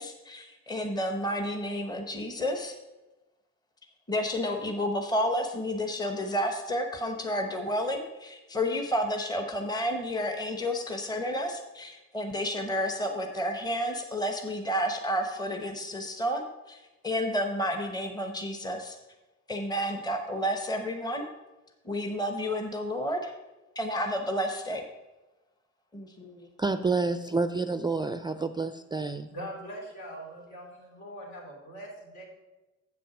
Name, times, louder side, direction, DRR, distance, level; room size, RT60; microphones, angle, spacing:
voice 1, 0.0-2.7 4.1-19.0 19.5-21.3 21.8-23.3 23.8-24.8 25.9-26.5, equal, 15° left, 4 dB, 1.0 m, -31 dB
voice 2, 26.6-29.3, right 3 dB, 15° right, 10 dB, 0.4 m, -29 dB
voice 3, 29.3-32.2, equal, 70° left, -2 dB, 3.4 m, -42 dB
7.7 x 6.0 x 5.9 m, 1.1 s
cardioid pair, 90°, 30 cm